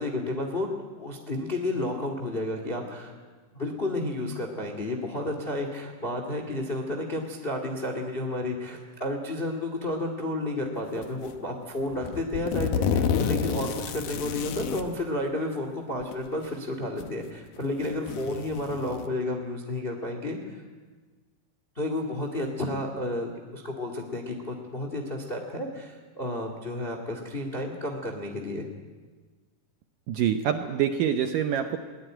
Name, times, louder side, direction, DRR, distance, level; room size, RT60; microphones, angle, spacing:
voice 1, 0.0-3.1 3.5-20.6 21.7-28.7, left 1 dB, 25° left, 3 dB, 1.3 m, -31 dB
sound 1, 11.0-11.4 11.9-14.9 16.0-16.1 17.0-17.1 17.6-19.1, left 7 dB, 65° left, 2.2 m, -30 dB
voice 2, 30.1-31.8, right 9 dB, 80° right, 7 dB, 1.9 m, -25 dB
21.5 x 19.5 x 9.1 m, 1.4 s
omnidirectional pair, 4.9 m